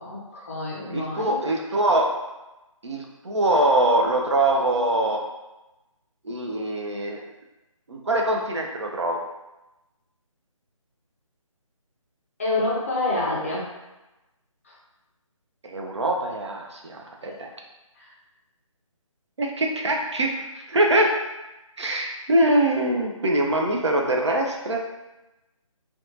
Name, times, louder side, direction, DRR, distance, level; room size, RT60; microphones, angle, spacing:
voice 1, 0.0-1.3 12.4-13.7 14.6-14.7 17.3-17.4 17.9-18.1, left 2 dB, 25° left, -5 dB, 0.5 m, -28 dB
voice 2, 0.9-2.1 2.8-5.2 6.2-7.2 7.9-9.2 15.6-17.5 19.4-21.1 21.8-24.8, right 1 dB, 55° right, 1 dB, 0.4 m, -23 dB
2.7 x 2.2 x 2.5 m, 1.0 s
figure-of-eight pair, 150°, 18 cm